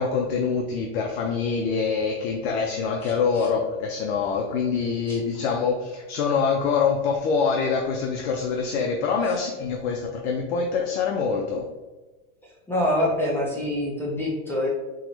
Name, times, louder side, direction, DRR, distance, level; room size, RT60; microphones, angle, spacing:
voice 1, 0.0-11.6, left 5 dB, 65° left, 1 dB, 0.5 m, -25 dB
voice 2, 12.7-14.7, left 1 dB, 5° left, -5 dB, 0.3 m, -25 dB
3.7 x 2.0 x 3.0 m, 1.2 s
supercardioid pair, 145°, 35 cm